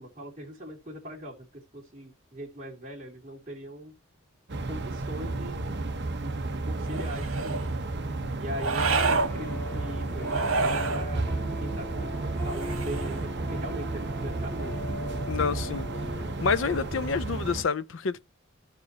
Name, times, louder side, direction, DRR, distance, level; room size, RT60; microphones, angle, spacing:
voice 1, 0.0-3.9 4.7-5.7 6.0-6.4 6.7-7.7 8.4-11.2 11.6-12.2 12.4-14.7, equal, 35° right, 2.7 m, -40 dB
sound 1, 4.5-17.6, right 2 dB, 55° right, 1.0 m, -32 dB
sound 2, 6.8-7.7 8.6-9.3 10.2-11.1 12.4-13.3, right 4 dB, 80° right, 1.6 m, -28 dB
sound 3, 9.3-16.9, equal, 10° left, 2.3 m, -40 dB
voice 2, 15.3-15.9 16.4-18.2, left 5 dB, 65° left, 0.5 m, -28 dB
14.0 x 4.8 x 2.8 m
head